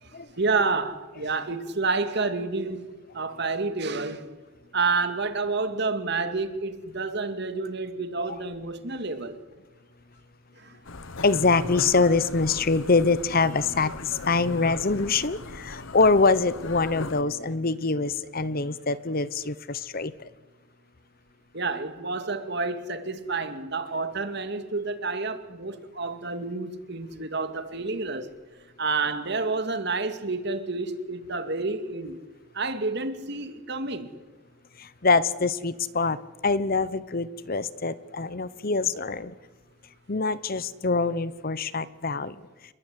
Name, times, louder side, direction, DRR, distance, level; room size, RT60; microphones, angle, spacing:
voice 1, 0.0-2.9 3.1-4.3 4.7-9.4 10.6-10.8 21.5-28.3 28.8-32.2 32.5-34.1, right 3 dB, 55° right, 2.4 m, -29 dB
sound 1, 10.8-17.2, left 3 dB, 70° left, 1.3 m, -39 dB
voice 2, 11.2-20.1 34.8-36.2 36.4-39.3 40.1-42.3, left 3 dB, 45° left, 0.9 m, -24 dB
28.5 x 21.0 x 9.7 m
head